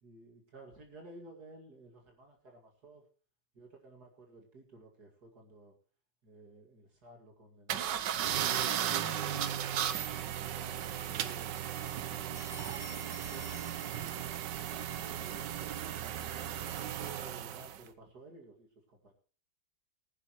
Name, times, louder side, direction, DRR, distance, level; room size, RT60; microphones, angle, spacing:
voice 1, 0.0-3.0 3.5-5.7 6.2-8.1 8.7-11.5 13.1-14.2 14.5-16.4 17.0-19.1, right 2 dB, 60° right, 2 dB, 2.8 m, -55 dB
sound 1, 7.7-17.8, right 10 dB, 75° right, 1.5 m, -36 dB
sound 2, 12.3-14.6, left 4 dB, 45° left, 3.8 m, -52 dB
20.0 x 9.8 x 3.1 m, 0.40 s
omnidirectional pair, 1.9 m